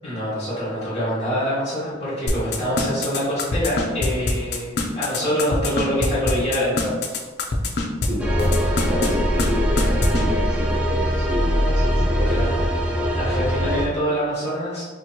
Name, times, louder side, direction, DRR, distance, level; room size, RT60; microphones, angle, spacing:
voice 1, 0.0-7.2 12.3-12.4 13.1-14.8, equal, 25° left, -11 dB, 1.3 m, -25 dB
sound 1, 2.3-8.1 8.4-9.1 9.4-9.5 9.8-10.2, left 3 dB, 60° left, 0.5 m, -23 dB
voice 2, 8.1-12.6, equal, 40° right, -8 dB, 0.9 m, -30 dB
sound 2, 8.2-13.9, equal, 5° right, 0.3 m, -21 dB
4.3 x 2.9 x 2.2 m, 1.3 s
head